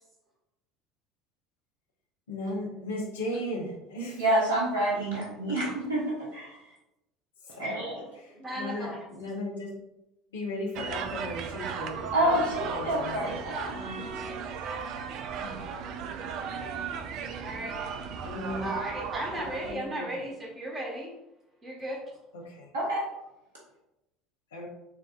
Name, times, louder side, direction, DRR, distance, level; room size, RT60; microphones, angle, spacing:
voice 1, 2.3-4.2 7.5-7.7 8.5-9.7 10.3-12.3 12.7-13.3 15.4-15.6 18.2-18.7 19.6-20.1 22.3-22.7 24.5-24.7, left 1 dB, 80° left, 1.1 m, -36 dB
voice 2, 4.2-6.7 7.6-8.0 12.1-14.0 22.7-23.1, right 1 dB, 75° right, 1.0 m, -28 dB
voice 3, 7.7-8.0 8.3-9.0 16.3-16.5 17.4-17.9 18.2-21.1 21.6-22.0, right 1 dB, 25° right, 1.4 m, -36 dB
sound 1, 10.8-19.7, right 6 dB, 55° right, 0.4 m, -36 dB
7.1 x 2.6 x 2.4 m
figure-of-eight pair, 70°, 0 cm